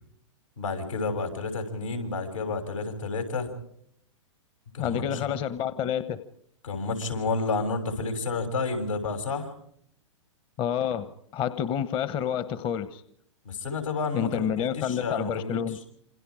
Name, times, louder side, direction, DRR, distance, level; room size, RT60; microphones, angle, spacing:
voice 1, 0.6-3.5 4.7-5.2 6.6-9.5 13.5-14.5 14.7-15.6, left 3 dB, 85° left, 5 dB, 7.3 m, -30 dB
voice 2, 4.8-6.2 10.6-13.0 14.1-15.8, left 9 dB, 30° left, 13 dB, 1.1 m, -29 dB
28.0 x 27.0 x 5.0 m, 0.69 s
hypercardioid pair, 125°, 16 cm